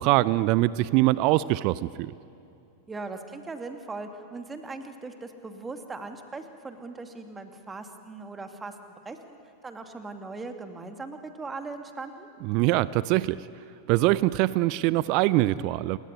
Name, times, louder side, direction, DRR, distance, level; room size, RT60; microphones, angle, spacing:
voice 1, 0.0-2.1 12.4-13.4 13.9-16.0, right 17 dB, 45° right, 19 dB, 0.6 m, -23 dB
voice 2, 2.9-8.7 9.0-9.4 9.6-12.3, right 3 dB, 15° right, 6 dB, 2.5 m, -39 dB
28.0 x 21.5 x 9.7 m, 2.6 s
figure-of-eight pair, 90°, 0 cm